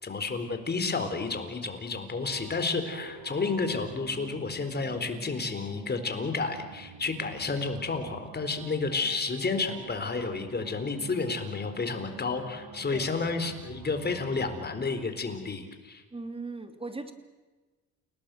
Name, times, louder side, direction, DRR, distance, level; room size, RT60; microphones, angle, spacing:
voice 1, 0.0-16.0, left 4 dB, 35° left, 8 dB, 4.2 m, -31 dB
sound 1, 2.2-15.0, right 5 dB, 85° right, 3.7 m, -47 dB
voice 2, 16.1-17.1, right 3 dB, 20° right, 7 dB, 3.2 m, -38 dB
30.0 x 18.5 x 7.8 m, 1.2 s
cardioid pair, 90°, 30 cm